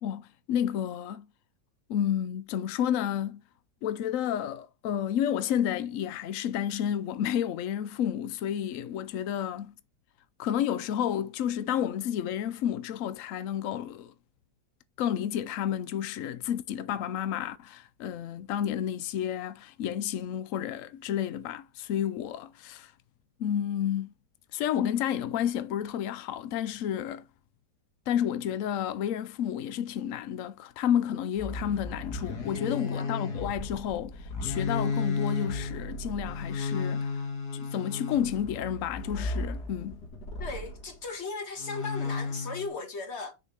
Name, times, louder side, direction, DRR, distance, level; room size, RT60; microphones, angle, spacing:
voice 1, 0.0-1.3 1.9-3.4 3.8-9.7 10.4-14.1 15.0-22.9 23.4-24.1 24.5-27.3 28.1-37.3 37.5-40.0, left 10 dB, 85° left, 0.7 m, -31 dB
sound 1, 31.4-40.9 41.6-42.7, left 4 dB, 60° left, 2.4 m, -34 dB
voice 2, 32.7-33.1 40.4-43.3, left 3 dB, 40° left, 1.7 m, -37 dB
6.6 x 4.9 x 5.7 m
omnidirectional pair, 2.0 m